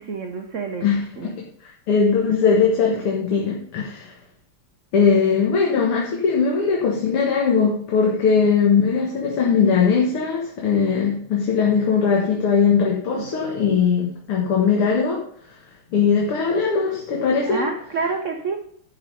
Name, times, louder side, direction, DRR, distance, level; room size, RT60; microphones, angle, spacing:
voice 1, 0.0-0.9 1.2-1.3 13.1-13.3 17.5-18.6, right 4 dB, 85° right, 0.6 m, -28 dB
voice 2, 0.8-4.1 4.9-15.2 15.9-17.6, left 5 dB, 80° left, 2.4 m, -20 dB
11.0 x 5.3 x 5.4 m
omnidirectional pair, 2.4 m